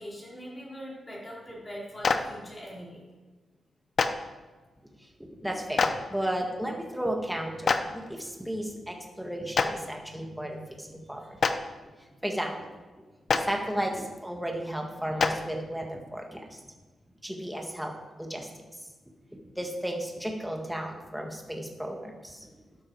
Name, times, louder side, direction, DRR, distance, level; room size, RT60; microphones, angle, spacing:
voice 1, 0.0-3.1 11.2-11.3, equal, 20° left, -5 dB, 4.1 m, -42 dB
Clapping, 2.0-2.2 4.0-4.1 5.8-5.9 7.7-7.8 9.5-9.7 11.4-11.5 13.3-13.4 15.2-15.3, left 5 dB, 40° left, 0.7 m, -22 dB
voice 2, 5.0-11.2 12.2-12.7 13.3-16.6 17.2-17.9 18.2-18.5 19.5-22.5, right 1 dB, ahead, 1 dB, 1.6 m, -34 dB
12.5 x 12.5 x 4.7 m, 1.3 s
wide cardioid pair, 180°, 0 cm